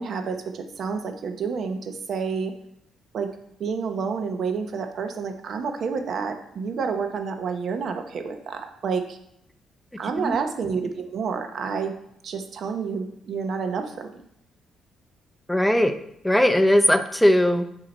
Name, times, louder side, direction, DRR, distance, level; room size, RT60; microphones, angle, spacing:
voice 1, 0.0-2.5 3.1-3.3 3.6-9.2 10.0-11.9 12.2-14.2, right 5 dB, 60° right, 6 dB, 0.8 m, -29 dB
voice 2, 15.5-16.0 16.2-17.7, left 1 dB, 5° left, 8 dB, 0.5 m, -19 dB
7.7 x 2.8 x 5.3 m, 0.73 s
cardioid pair, 90°, 0 cm